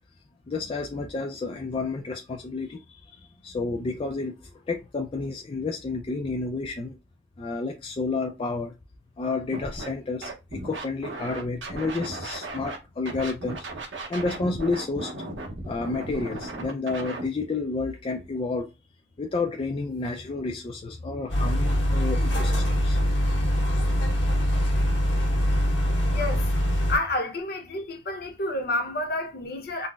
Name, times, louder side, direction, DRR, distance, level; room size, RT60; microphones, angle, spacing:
voice 1, 0.5-4.4 4.7-7.0 7.4-8.7 9.2-13.6 14.1-15.1 15.7-18.7 19.2-23.0, left 3 dB, 30° left, 0.3 m, -30 dB
Scratching (performance technique), 9.5-9.9 10.2-12.8 13.0-17.2, right 2 dB, 85° right, 0.7 m, -36 dB
sound 1, 21.3-27.0, equal, 85° left, 1.3 m, -23 dB
voice 2, 26.1-29.9, left 2 dB, 55° left, 0.7 m, -30 dB
3.8 x 2.0 x 2.3 m
head